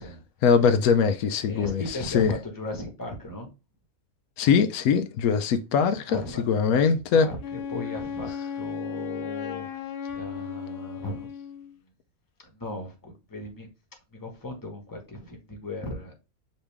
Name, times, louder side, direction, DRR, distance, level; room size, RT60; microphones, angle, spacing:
voice 1, 0.4-1.8 2.1-2.3 4.4-6.2 6.5-7.3, left 6 dB, 85° left, 1.0 m, -21 dB
voice 2, 1.4-3.5 6.1-11.3 12.5-13.7 14.1-16.1, left 1 dB, 15° left, 1.2 m, -37 dB
Wind instrument woodwind instrument, 7.4-11.8, left 7 dB, 65° left, 0.5 m, -35 dB
5.2 x 2.9 x 3.4 m
omnidirectional pair, 1.5 m